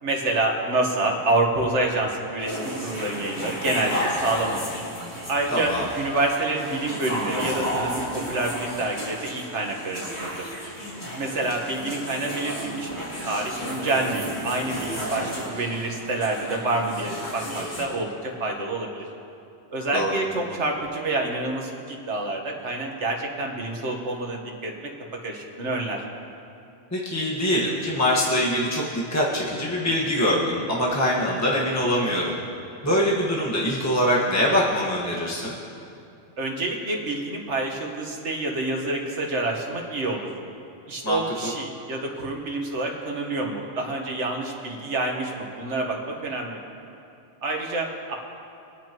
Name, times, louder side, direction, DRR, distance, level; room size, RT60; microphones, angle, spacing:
voice 1, 0.0-4.7 5.3-10.5 11.1-19.0 19.7-24.7 25.1-26.0 36.4-40.3 40.9-46.6 47.4-48.1, right 2 dB, 75° right, 1 dB, 1.7 m, -27 dB
sound 1, 2.4-17.8, equal, 65° left, 3.3 m, -32 dB
voice 2, 5.5-5.8 19.9-20.1 26.9-32.3 32.8-35.6 41.0-41.5, equal, 15° left, -5 dB, 1.5 m, -23 dB
23.5 x 9.0 x 3.0 m, 2.6 s
omnidirectional pair, 1.2 m